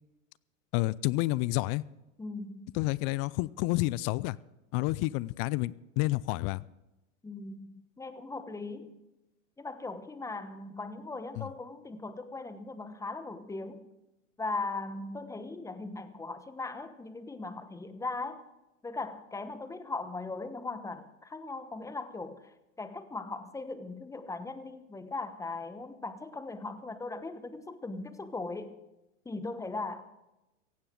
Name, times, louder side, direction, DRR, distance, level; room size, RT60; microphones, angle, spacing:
voice 1, 0.7-1.8 2.7-4.4 4.7-6.6 11.4-11.5, left 20 dB, 35° left, 22 dB, 0.4 m, -29 dB
voice 2, 2.2-2.8 7.2-8.9 9.6-13.9 14.4-18.4 18.8-22.4 22.8-28.8 29.2-30.1, left 3 dB, 10° left, 11 dB, 1.1 m, -39 dB
17.5 x 15.5 x 3.8 m, 0.97 s
hypercardioid pair, 110°, 38 cm